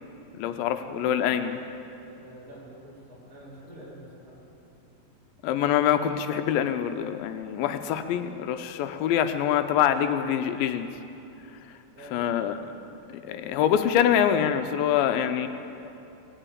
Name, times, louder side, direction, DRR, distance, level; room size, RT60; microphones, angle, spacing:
voice 1, 0.3-1.6 5.4-10.9 12.1-12.6 13.1-15.5, left 9 dB, 90° left, 8 dB, 2.4 m, -25 dB
voice 2, 2.1-4.4 11.9-12.3, right 1 dB, 40° right, -7 dB, 5.3 m, -47 dB
18.5 x 9.0 x 8.6 m, 2.8 s
omnidirectional pair, 4.1 m